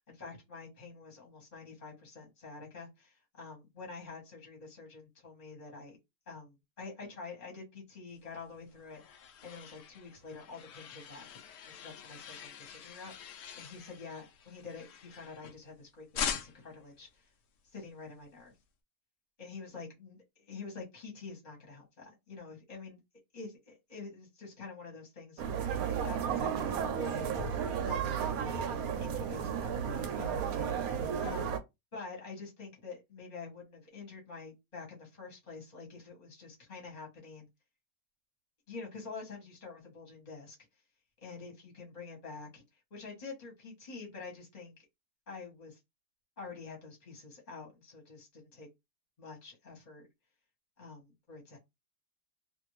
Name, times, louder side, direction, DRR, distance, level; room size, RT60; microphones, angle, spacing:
voice 1, 0.1-6.0 6.3-17.3 17.6-18.5 19.4-23.0 23.3-25.5 25.9-27.3 27.8-30.9 31.2-31.6 31.9-37.5 38.7-40.5 41.2-42.6 42.9-44.8 45.3-45.8 46.4-48.7 49.2-50.0 50.8-51.6, left 4 dB, 30° left, -1 dB, 0.9 m, -47 dB
sound 1, 8.4-15.7 16.1-16.8, left 7 dB, 85° left, 0.6 m, -43 dB
sound 2, 25.4-31.6, right 7 dB, 65° right, 0.9 m, -33 dB
2.6 x 2.6 x 3.0 m, 0.21 s
omnidirectional pair, 2.0 m